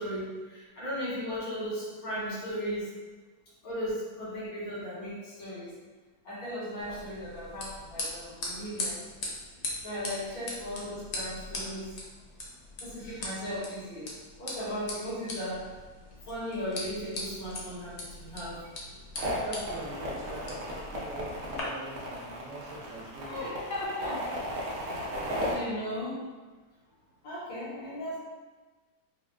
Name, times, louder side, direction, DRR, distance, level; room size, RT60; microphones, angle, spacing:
voice 1, 0.0-2.9 3.6-5.7 6.2-9.0 9.8-12.0 12.8-14.1 14.4-15.7 16.3-18.6 23.3-24.2 25.4-26.2 27.2-28.2, equal, 85° left, -9 dB, 2.1 m, -36 dB
sound 1, 6.8-21.6, left 2 dB, 60° left, 0.8 m, -41 dB
sound 2, 19.2-25.5, equal, 65° right, 1.0 m, -35 dB
voice 2, 19.4-23.5, right 2 dB, 80° right, -1 dB, 1.3 m, -42 dB
5.0 x 2.1 x 2.3 m, 1.3 s
omnidirectional pair, 1.8 m